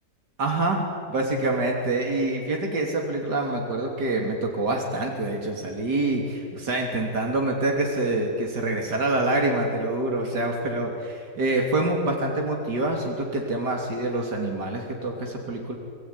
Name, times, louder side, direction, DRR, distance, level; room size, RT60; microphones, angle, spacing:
voice 1, 0.4-0.8 1.1-15.8, right 2 dB, 80° right, 1 dB, 3.7 m, -26 dB
29.5 x 20.5 x 9.8 m, 2.3 s
omnidirectional pair, 1.8 m